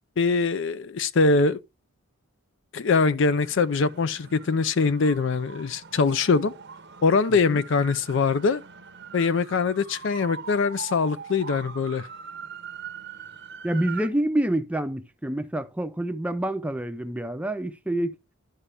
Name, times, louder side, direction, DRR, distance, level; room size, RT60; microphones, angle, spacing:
voice 1, 0.2-1.6 2.7-6.5 7.0-8.6 9.1-12.1, left 4 dB, 60° left, 0.5 m, -23 dB
sound 1, 3.3-14.1, right 6 dB, 55° right, 0.7 m, -42 dB
voice 2, 7.3-7.6 13.6-18.1, right 1 dB, 5° right, 0.5 m, -27 dB
11.0 x 5.6 x 3.3 m
head